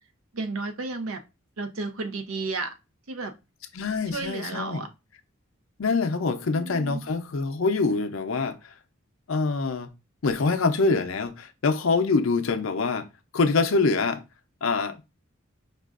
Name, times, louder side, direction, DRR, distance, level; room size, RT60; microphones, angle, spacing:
voice 1, 0.3-1.2 1.6-2.7 3.1-3.3 4.1-4.9 6.2-7.0, right 3 dB, 85° right, 0.6 m, -33 dB
voice 2, 3.7-4.9 5.8-8.7 9.3-9.9 10.2-13.1 13.3-14.2 14.6-15.0, left 4 dB, 75° left, 0.5 m, -25 dB
5.2 x 2.4 x 2.4 m
head